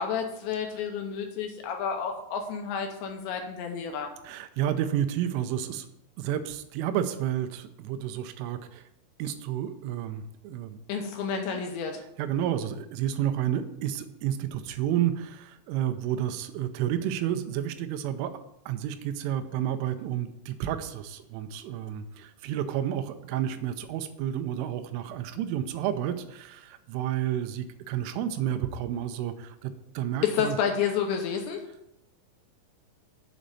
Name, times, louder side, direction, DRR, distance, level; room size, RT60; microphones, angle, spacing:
voice 1, 0.0-4.1 10.9-12.0 30.2-31.6, left 7 dB, 80° left, 3 dB, 2.9 m, -30 dB
voice 2, 4.2-5.9 6.2-8.9 9.2-10.8 11.5-11.6 12.0-18.4 18.7-30.6, right 10 dB, 90° right, 9 dB, 3.2 m, -31 dB
7.6 x 5.1 x 6.8 m, 0.79 s
omnidirectional pair, 5.5 m